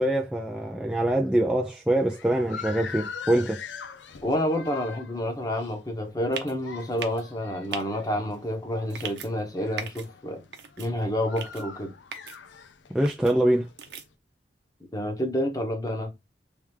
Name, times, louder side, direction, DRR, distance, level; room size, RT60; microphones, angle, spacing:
voice 1, 0.0-3.6 12.9-13.7, right 1 dB, 5° right, 0.4 m, -24 dB
sound 1, 2.0-14.1, left 6 dB, 90° left, 0.6 m, -43 dB
voice 2, 4.2-10.4 10.8-11.9 14.9-16.1, left 1 dB, 20° left, 1.0 m, -29 dB
sound 2, 6.3-6.5 7.0-7.2 7.7-7.8 8.9-9.3 9.8-10.1 10.5-10.9 11.4-11.6 12.1-12.4 13.0-13.3 13.8-14.0, right 7 dB, 65° right, 0.8 m, -37 dB
3.4 x 3.4 x 3.2 m
head